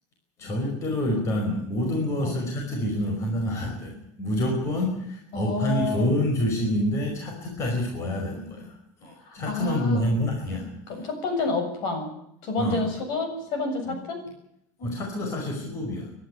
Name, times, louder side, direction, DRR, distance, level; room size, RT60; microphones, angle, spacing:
voice 1, 0.4-11.0 12.6-12.8 13.9-14.0 14.8-16.1, left 1 dB, 30° left, 1 dB, 5.1 m, -27 dB
voice 2, 5.3-6.1 9.3-10.1 10.9-12.1 12.4-14.2, left 3 dB, 55° left, 6 dB, 7.2 m, -29 dB
23.0 x 12.0 x 9.8 m, 0.76 s
cardioid pair, 160°, 9 cm